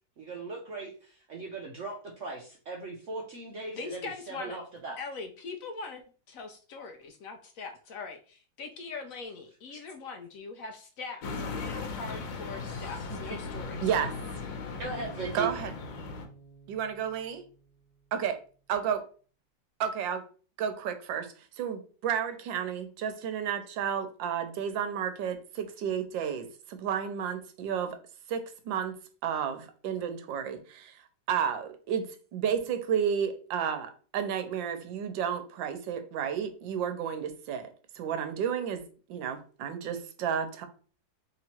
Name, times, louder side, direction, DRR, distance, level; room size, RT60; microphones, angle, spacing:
voice 1, 0.2-0.9 1.1-5.0 12.7-12.9 14.8-15.5, right 3 dB, 65° right, 0.7 m, -38 dB
voice 2, 3.8-4.6 5.0-13.9, left 4 dB, 70° left, 0.8 m, -41 dB
sound 1, 11.2-16.3, left 4 dB, 90° left, 1.5 m, -37 dB
voice 3, 13.8-14.1 15.3-15.7 16.7-17.4 18.1-18.3 18.7-19.0 19.8-20.2 20.6-28.0 28.3-29.0 29.2-31.0 31.3-37.7 38.0-38.8 39.1-40.7, right 8 dB, 90° right, 1.4 m, -32 dB
sound 2, 14.8-18.0, right 2 dB, 10° right, 0.8 m, -51 dB
3.3 x 2.9 x 4.2 m
omnidirectional pair, 2.0 m